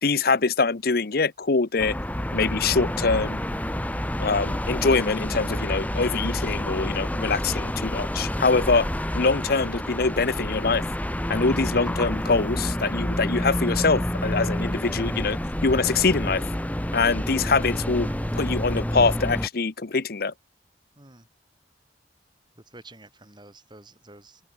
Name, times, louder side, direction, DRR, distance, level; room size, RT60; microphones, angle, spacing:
voice 1, 0.0-1.9 2.3-3.4 4.2-8.9 9.1-10.8 11.3-16.4 16.9-18.1 18.4-20.3, left 4 dB, 55° left, 0.9 m, -24 dB
sound 1, 1.8-19.5, equal, 10° left, 1.3 m, -28 dB
voice 2, 21.0-21.3 22.6-24.4, right 2 dB, 25° right, 7.4 m, -49 dB
open air
head